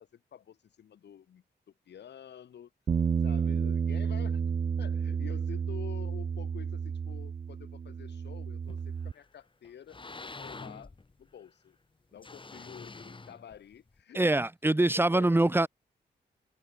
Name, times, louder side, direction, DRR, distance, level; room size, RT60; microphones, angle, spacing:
voice 1, 0.0-1.4 1.8-2.7 3.2-4.4 4.8-10.9 11.2-11.8 12.1-14.4 14.7-15.7, left 9 dB, 75° left, 3.4 m, -49 dB
Bass guitar, 2.9-9.1, right 6 dB, 30° right, 0.4 m, -31 dB
sound 1, 8.6-9.3 9.6-11.5 12.2-14.0, left 3 dB, 30° left, 6.2 m, -46 dB
voice 2, 14.1-15.7, right 2 dB, 10° right, 1.4 m, -24 dB
cardioid pair, 85°, 18 cm